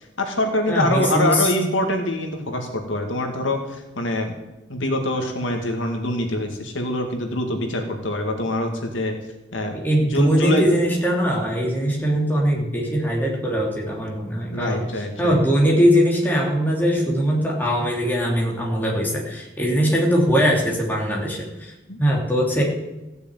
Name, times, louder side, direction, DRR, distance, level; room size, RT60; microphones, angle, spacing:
voice 1, 0.2-4.3 4.7-9.1 9.5-9.7 10.1-10.6 14.5-15.4 21.9-22.0, left 1 dB, 80° left, 4 dB, 2.2 m, -24 dB
voice 2, 0.7-1.5 9.7-14.9 15.2-21.7 22.0-22.6, equal, 10° left, -3 dB, 2.9 m, -21 dB
15.5 x 6.8 x 9.1 m, 1.0 s
head